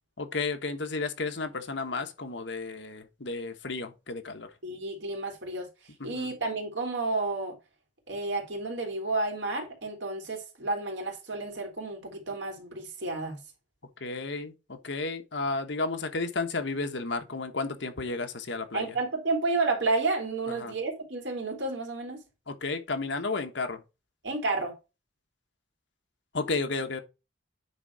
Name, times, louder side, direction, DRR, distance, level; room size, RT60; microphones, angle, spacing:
voice 1, 0.2-4.5 6.0-6.3 14.0-19.0 20.6-20.7 22.5-23.8 26.3-27.0, left 3 dB, 65° left, 1.2 m, -32 dB
voice 2, 4.6-5.7 6.0-7.6 8.1-13.4 18.7-22.2 24.2-24.7, right 3 dB, 65° right, 3.3 m, -31 dB
9.8 x 3.8 x 4.8 m
head